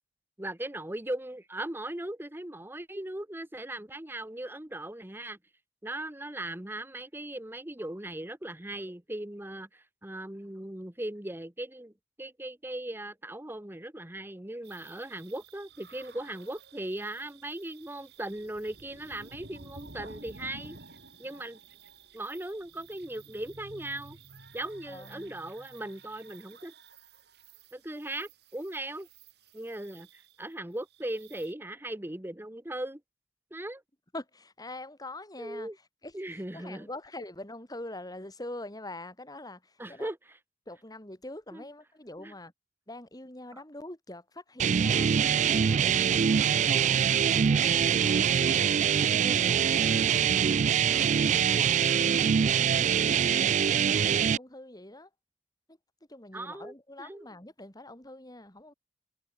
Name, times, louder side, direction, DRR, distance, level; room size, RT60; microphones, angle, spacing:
voice 1, 0.4-5.4 5.8-11.9 12.2-20.8 21.2-21.6 22.1-24.2 24.5-26.7 27.7-29.1 29.5-33.0 33.5-33.8 35.4-35.8 36.1-36.9 39.8-40.4 41.5-41.6 42.2-42.3 56.3-57.3, right 1 dB, 10° right, 1.1 m, -38 dB
sound 1, 14.6-31.5, right 3 dB, 65° right, 4.5 m, -52 dB
voice 2, 24.9-25.3 34.1-35.7 36.0-40.1 40.7-42.5 42.9-47.3 47.7-50.1 50.5-55.1 55.7-55.8 56.1-58.7, left 1 dB, 20° left, 3.5 m, -45 dB
sound 2, 44.6-54.4, right 8 dB, 40° right, 0.3 m, -24 dB
head